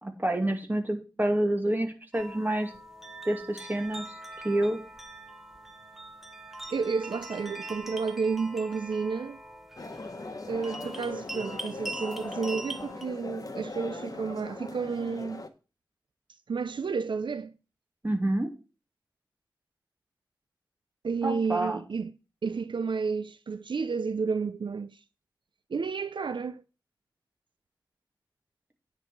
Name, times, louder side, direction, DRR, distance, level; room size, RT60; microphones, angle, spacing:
voice 1, 0.0-2.7 3.3-4.2 4.4-4.8 18.0-18.5 21.2-21.8, right 1 dB, 25° right, 2.2 m, -28 dB
sound 1, 2.1-13.1, right 1 dB, 5° right, 1.3 m, -42 dB
voice 2, 6.7-9.4 10.5-15.4 16.5-17.5 21.0-22.1 22.4-25.0 25.7-26.6, right 5 dB, 75° right, 0.5 m, -31 dB
sound 2, 9.8-15.5, left 3 dB, 45° left, 1.2 m, -40 dB
9.9 x 4.8 x 7.2 m
wide cardioid pair, 75°, 8 cm